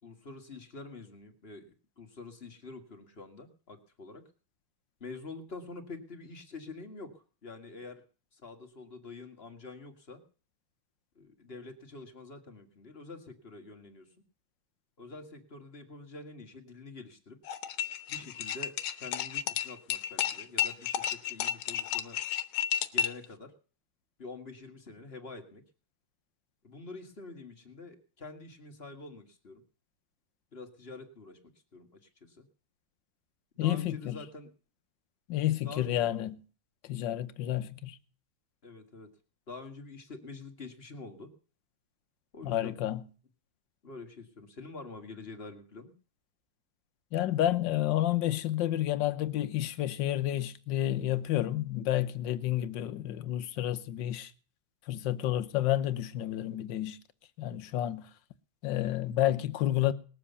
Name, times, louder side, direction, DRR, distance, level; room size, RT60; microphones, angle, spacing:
voice 1, 0.0-1.7 2.0-4.2 5.0-8.0 8.3-10.2 11.2-14.1 15.0-17.4 18.1-22.2 22.9-23.5 24.2-25.6 26.6-29.6 30.5-32.5 33.6-34.5 35.6-36.1 38.6-39.1 39.5-41.3 42.3-42.8 43.8-45.9, left 3 dB, 30° left, 1.9 m, -46 dB
sound 1, 17.4-23.2, left 11 dB, 85° left, 1.9 m, -32 dB
voice 2, 33.6-34.2 35.3-36.4 36.8-38.0 42.4-43.0 47.1-54.3 54.9-57.0 57.4-58.1 58.6-59.9, left 13 dB, 65° left, 1.5 m, -30 dB
20.0 x 7.5 x 6.9 m
omnidirectional pair, 2.2 m